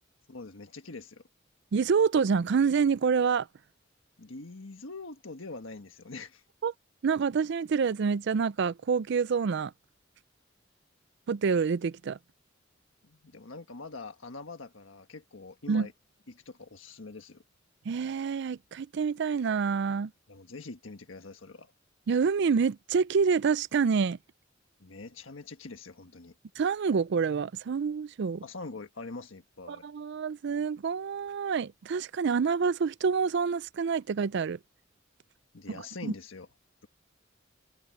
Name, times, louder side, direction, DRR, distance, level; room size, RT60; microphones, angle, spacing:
voice 1, 0.3-1.2 4.2-6.4 13.0-15.9 16.3-17.4 20.3-21.7 24.8-26.3 28.4-29.9 35.5-36.5, left 3 dB, 85° left, 1.4 m, -44 dB
voice 2, 1.7-3.5 6.6-6.7 7.0-9.7 11.3-12.2 15.7-15.9 17.9-20.1 22.1-24.2 26.6-28.4 29.7-34.6 36.0-36.1, right 5 dB, 60° right, 0.4 m, -27 dB
head